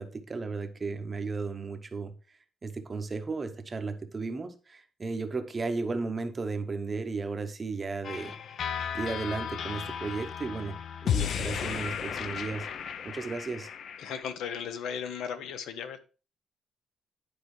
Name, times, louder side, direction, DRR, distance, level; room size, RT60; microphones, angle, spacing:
voice 1, 0.0-8.4 8.9-12.7 13.0-13.7, right 4 dB, 25° right, 0.7 m, -35 dB
sound 1, 8.0-14.2, left 8 dB, 50° left, 0.4 m, -34 dB
voice 2, 14.0-16.0, left 7 dB, 85° left, 0.8 m, -36 dB
10.5 x 4.7 x 3.1 m
cardioid pair, 165°, 0 cm